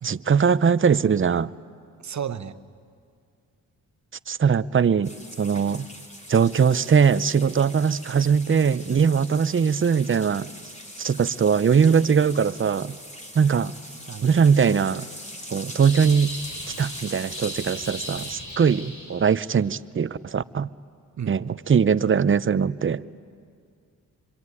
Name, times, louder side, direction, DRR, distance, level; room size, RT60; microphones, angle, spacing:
voice 1, 0.0-1.5 4.3-5.9 6.3-10.5 11.0-13.0 13.4-13.7 14.2-15.1 15.5-16.4 16.8-20.7 21.3-23.0, right 6 dB, 35° right, 17 dB, 0.7 m, -21 dB
voice 2, 2.0-2.5 14.1-14.4 21.2-21.4, right 8 dB, 50° right, 13 dB, 1.1 m, -33 dB
sound 1, 5.0-18.4, equal, 20° left, 4.1 m, -41 dB
sound 2, 15.8-19.5, left 1 dB, 55° left, 7.5 m, -38 dB
25.5 x 24.0 x 9.7 m, 2.3 s
supercardioid pair, 50°, 36 cm